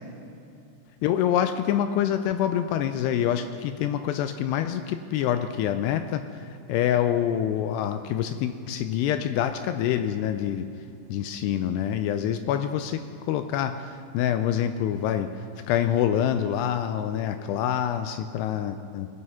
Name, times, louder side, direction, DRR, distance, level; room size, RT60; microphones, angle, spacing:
voice 1, 1.0-10.7 11.1-15.3 15.7-19.1, left 10 dB, 85° left, 9 dB, 2.5 m, -26 dB
21.5 x 8.1 x 5.6 m, 2.6 s
omnidirectional pair, 5.0 m